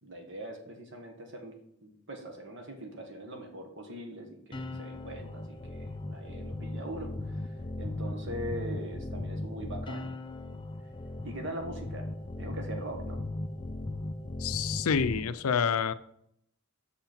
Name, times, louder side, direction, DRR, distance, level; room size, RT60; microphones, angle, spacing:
voice 1, 0.0-10.1 11.2-12.1 12.4-13.2 15.1-15.2, right 1 dB, 60° right, 3 dB, 1.4 m, -42 dB
sound 1, 4.5-15.2, left 2 dB, 20° left, 0.4 m, -37 dB
voice 2, 14.4-15.9, left 6 dB, 85° left, 13 dB, 0.5 m, -28 dB
6.5 x 5.7 x 4.4 m, 0.72 s
head